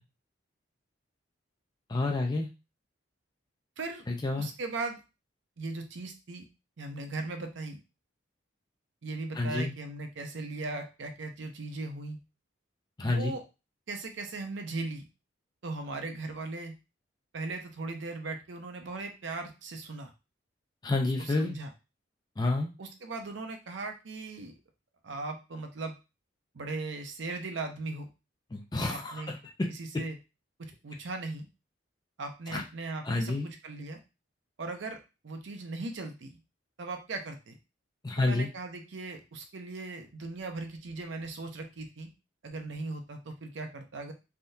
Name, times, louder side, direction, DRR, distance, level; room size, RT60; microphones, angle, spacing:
voice 1, 1.9-2.5 4.1-4.5 9.4-9.7 13.0-13.3 20.8-21.5 22.4-22.7 28.5-29.2 32.5-32.6 33.0-33.5 38.0-38.5, left 2 dB, 20° left, 2 dB, 0.4 m, -29 dB
voice 2, 4.4-5.0 5.6-6.5 6.8-7.8 9.0-12.2 13.0-13.4 13.9-15.0 15.6-16.7 17.3-20.1 21.2-21.7 22.8-24.5 25.0-25.9 26.5-28.1 28.9-29.4 29.7-30.2 30.6-31.5 32.2-34.0 34.6-36.4 36.8-37.6 38.2-42.1 42.4-44.1, right 3 dB, 65° right, 5 dB, 0.5 m, -38 dB
3.5 x 2.3 x 2.6 m, 0.28 s
head